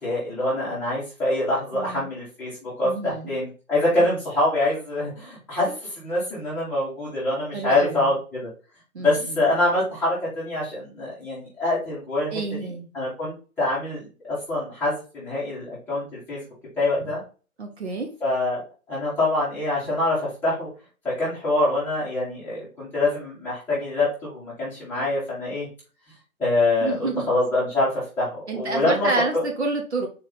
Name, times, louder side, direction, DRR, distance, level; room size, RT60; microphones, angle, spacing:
voice 1, 0.0-8.5 9.0-14.0 14.3-16.4 16.8-17.2 18.2-18.6 18.9-20.7 21.0-25.7 26.4-29.4, left 2 dB, 5° left, -10 dB, 1.2 m, -25 dB
voice 2, 1.7-2.1 2.8-3.4 4.0-4.1 7.5-8.1 8.9-9.4 12.3-12.9 17.6-18.1 26.8-27.3 28.5-30.1, right 3 dB, 50° right, 2 dB, 1.0 m, -29 dB
4.1 x 2.8 x 3.8 m, 0.35 s
figure-of-eight pair, 140°, 43 cm